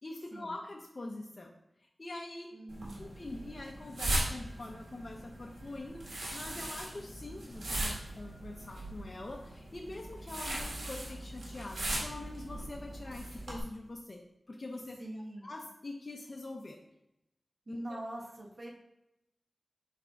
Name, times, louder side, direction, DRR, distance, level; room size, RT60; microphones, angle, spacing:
voice 1, 0.0-1.5 1.8-2.5 3.0-14.2 14.5-15.0 15.4-16.8 17.7-17.8, left 2 dB, 40° left, 0 dB, 0.7 m, -44 dB
voice 2, 2.5-3.1 15.0-15.5 17.7-18.7, right 1 dB, 50° right, 0 dB, 1.3 m, -43 dB
sound 1, 2.7-13.6, right 1 dB, 85° right, 2.1 m, -39 dB
7.8 x 3.3 x 3.7 m, 0.88 s
wide cardioid pair, 75°, 0 cm